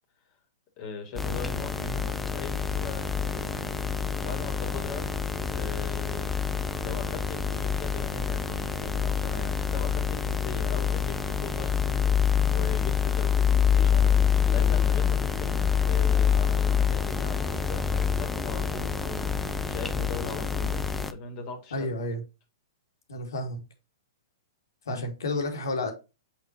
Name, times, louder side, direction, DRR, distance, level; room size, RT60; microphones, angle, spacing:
voice 1, 0.8-3.8 4.2-5.1 5.5-6.3 6.8-12.1 12.5-14.1 14.5-19.3 19.7-20.8 21.1-21.9 24.9-25.0, left 4 dB, 40° left, 2.4 m, -40 dB
sound 1, 1.2-21.1, left 7 dB, 5° left, 0.6 m, -26 dB
voice 2, 21.7-22.2 23.1-23.6 24.9-25.9, left 2 dB, 75° left, 2.4 m, -31 dB
7.8 x 4.7 x 3.0 m
hypercardioid pair, 125°, 2 cm